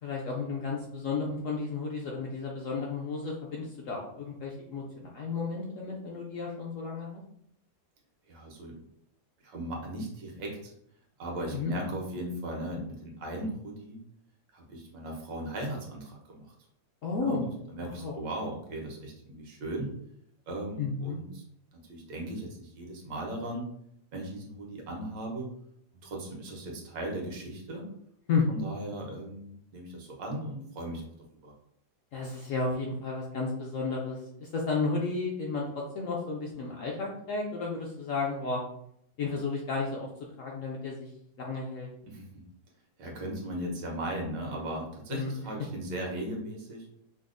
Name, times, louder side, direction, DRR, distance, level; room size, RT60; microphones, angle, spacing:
voice 1, 0.0-7.2 11.5-11.7 17.0-17.5 17.8-18.2 20.8-21.2 28.3-28.5 32.1-38.6 39.2-40.1 40.4-41.1 41.4-41.9 45.1-45.3, left 4 dB, 70° left, -2 dB, 0.7 m, -33 dB
voice 2, 8.3-8.8 9.4-10.7 11.2-14.0 14.5-16.5 17.2-17.4 17.7-19.9 20.5-21.4 21.7-23.6 24.1-25.5 26.0-27.9 28.5-31.1 31.4-31.5 42.1-42.4 43.0-46.9, right 1 dB, 85° right, 0 dB, 1.5 m, -37 dB
5.1 x 2.0 x 2.5 m, 0.71 s
omnidirectional pair, 1.8 m